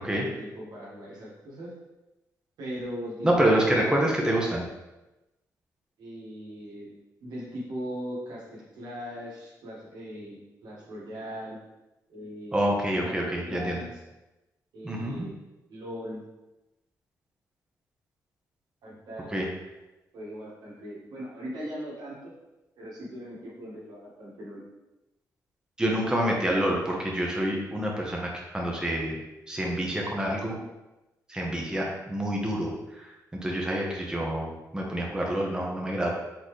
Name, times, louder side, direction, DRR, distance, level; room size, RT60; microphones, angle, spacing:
voice 1, 0.0-1.7 2.6-3.8 6.0-6.9 7.2-11.6 12.1-14.0 14.7-15.4 15.7-16.2 18.8-19.4 20.1-22.3 22.8-24.6, equal, 85° right, -5 dB, 1.6 m, -39 dB
voice 2, 3.2-4.6 12.5-13.8 14.8-15.3 19.3-19.5 25.8-29.2 29.5-30.6 31.3-33.1 33.4-36.1, right 1 dB, 10° right, -2 dB, 0.9 m, -27 dB
4.3 x 3.9 x 3.2 m, 1.0 s
cardioid pair, 80°, 7 cm